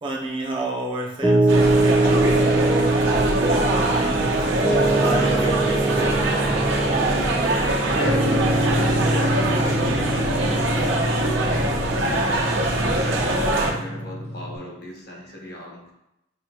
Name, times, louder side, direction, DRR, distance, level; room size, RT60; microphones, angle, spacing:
voice 1, 0.0-6.7, right 1 dB, 25° right, -1 dB, 0.4 m, -31 dB
Piano, 1.2-14.6, right 2 dB, 15° left, 0.7 m, -23 dB
sound 1, 1.5-13.7, right 1 dB, 85° right, 0.8 m, -23 dB
voice 2, 7.8-12.4 12.7-15.9, left 1 dB, 50° left, -1 dB, 0.9 m, -36 dB
6.0 x 2.2 x 2.8 m, 0.86 s
head